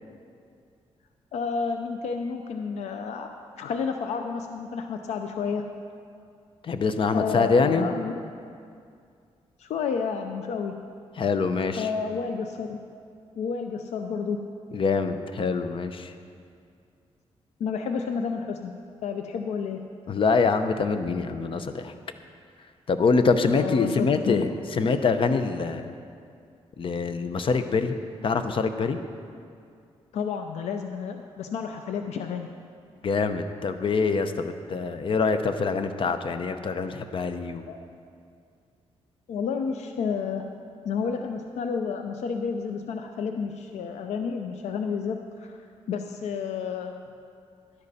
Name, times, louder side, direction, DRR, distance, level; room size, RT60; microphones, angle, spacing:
voice 1, 1.3-3.3 3.6-5.7 7.1-8.2 9.6-10.8 11.8-12.8 13.4-14.4 17.6-18.7 19.0-19.8 23.5-24.4 30.1-32.5 37.7-37.8 39.3-40.5 40.8-45.6 45.9-46.9, left 6 dB, 85° left, 5 dB, 0.5 m, -30 dB
voice 2, 6.6-7.9 11.2-11.9 14.7-16.1 20.1-21.9 22.9-25.9 26.8-28.0 28.2-29.0 33.0-37.7, left 4 dB, 50° left, 9 dB, 0.7 m, -25 dB
12.0 x 10.5 x 4.2 m, 2.4 s
cardioid pair, 85°, 11 cm